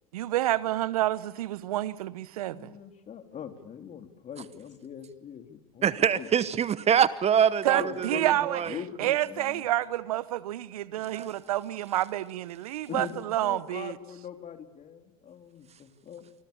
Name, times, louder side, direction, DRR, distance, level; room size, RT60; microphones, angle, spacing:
voice 1, 0.1-2.7 7.6-14.0, right 14 dB, 80° right, 1.0 m, -29 dB
voice 2, 2.5-6.3 7.7-9.7 12.9-16.3, left 8 dB, 40° left, 3.7 m, -42 dB
voice 3, 5.8-8.7 11.1-11.3, right 8 dB, 35° right, 1.1 m, -24 dB
26.5 x 25.5 x 7.2 m
hypercardioid pair, 80°, 19 cm